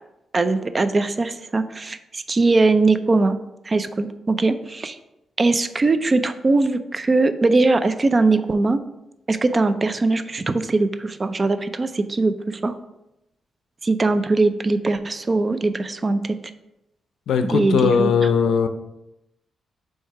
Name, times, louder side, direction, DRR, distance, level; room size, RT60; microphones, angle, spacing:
voice 1, 0.3-3.4 3.7-5.0 5.4-8.8 9.3-12.7 13.8-16.2 17.5-18.1, right 3 dB, 25° right, 11 dB, 0.4 m, -20 dB
voice 2, 17.3-18.7, left 6 dB, 85° left, 8 dB, 0.5 m, -19 dB
7.5 x 2.8 x 4.6 m, 0.89 s
wide cardioid pair, 140°, 0 cm